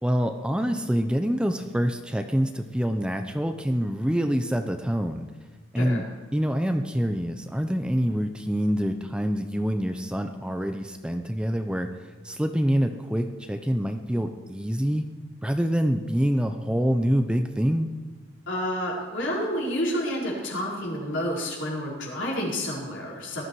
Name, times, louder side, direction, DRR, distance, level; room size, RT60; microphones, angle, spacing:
voice 1, 0.0-5.3 5.7-6.0 6.3-11.9 12.2-15.0 15.4-17.9, equal, 5° right, 6 dB, 0.6 m, -26 dB
voice 2, 18.5-23.4, equal, 65° left, -4 dB, 4.6 m, -29 dB
19.0 x 13.0 x 4.7 m, 1.3 s
head